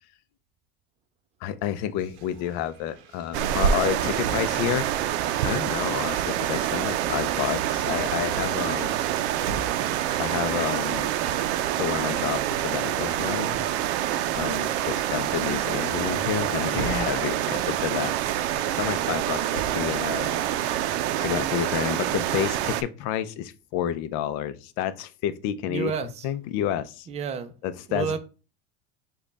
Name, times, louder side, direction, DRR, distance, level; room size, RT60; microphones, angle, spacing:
voice 1, 1.4-9.0 10.2-11.1 11.8-13.7 14.4-20.4 21.2-25.9 26.2-27.1 27.6-28.2, left 10 dB, 55° left, 0.5 m, -30 dB
sound 1, 2.0-5.1 6.0-10.2 11.3-11.6 11.9-14.2 14.7-14.9 15.3-17.7 18.6-20.1, right 5 dB, 50° right, 0.8 m, -42 dB
sound 2, 3.3-22.8, right 11 dB, 85° right, 0.5 m, -26 dB
voice 2, 25.6-26.3 27.1-27.5 27.9-28.2, right 6 dB, 20° right, 0.4 m, -30 dB
5.1 x 2.3 x 3.9 m
supercardioid pair, 135°, 33 cm